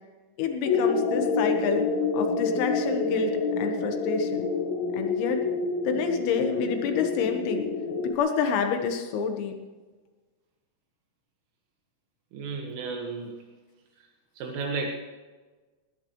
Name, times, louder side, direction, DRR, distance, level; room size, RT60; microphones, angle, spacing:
voice 1, 0.4-1.8 2.1-4.5 4.9-5.4 5.9-7.7 8.0-9.6, left 6 dB, 85° left, 5 dB, 4.1 m, -28 dB
sound 1, 0.7-8.2, left 4 dB, 70° left, 3.9 m, -27 dB
voice 2, 12.3-13.4 14.4-14.9, right 4 dB, 75° right, 0 dB, 4.1 m, -33 dB
20.5 x 18.0 x 3.2 m, 1.3 s
omnidirectional pair, 5.9 m